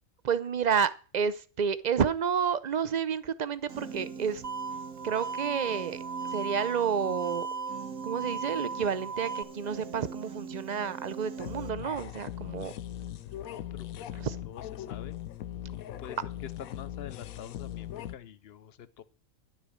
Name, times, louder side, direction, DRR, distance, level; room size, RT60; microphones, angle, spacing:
voice 1, 0.2-4.4 5.0-6.0 6.3-7.5 8.0-12.7 14.2-14.4, right 7 dB, 50° right, 0.5 m, -30 dB
Piano, 3.7-11.7, right 6 dB, 75° right, 1.9 m, -43 dB
sound 1, 4.4-9.4, right 4 dB, 30° right, 1.2 m, -37 dB
sound 2, 11.4-18.2, left 12 dB, 85° left, 1.2 m, -39 dB
voice 2, 13.4-14.2 14.5-15.2 15.7-19.0, left 9 dB, 55° left, 0.9 m, -47 dB
10.5 x 8.6 x 6.5 m
omnidirectional pair, 1.4 m